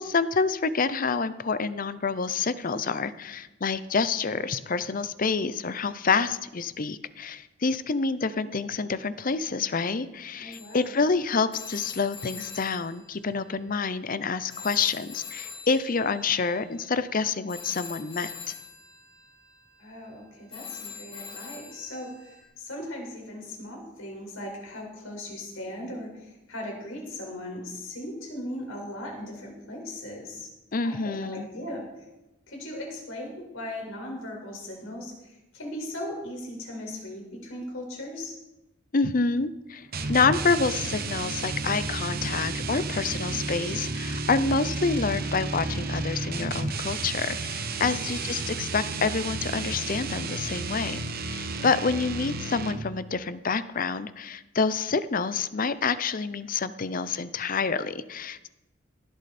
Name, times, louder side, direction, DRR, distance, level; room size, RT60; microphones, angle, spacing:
voice 1, 0.0-18.5 30.7-31.5 38.9-51.0 51.3-58.5, left 4 dB, 40° left, 14 dB, 0.6 m, -27 dB
voice 2, 10.4-10.9 19.8-30.5 30.8-31.8 32.5-38.4 47.8-48.3 51.5-52.0, left 1 dB, 75° left, 0 dB, 5.0 m, -38 dB
Telephone, 10.5-14.2 14.5-22.4, left 6 dB, 25° left, 2.3 m, -44 dB
sound 1, 39.9-53.0, right 3 dB, 45° right, 1.1 m, -32 dB
18.0 x 11.5 x 4.3 m, 0.98 s
head